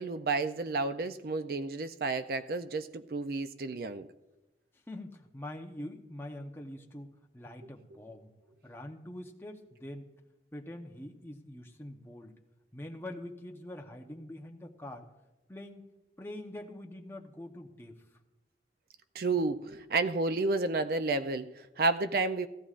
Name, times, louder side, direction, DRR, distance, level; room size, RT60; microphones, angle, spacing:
voice 1, 0.0-4.1 19.1-22.5, right 3 dB, 55° right, 0.4 m, -31 dB
voice 2, 4.7-8.3 8.6-10.1 10.5-12.4 12.7-15.1 15.5-15.9 16.2-18.2, left 1 dB, 15° left, 0.9 m, -44 dB
17.0 x 14.0 x 2.5 m
head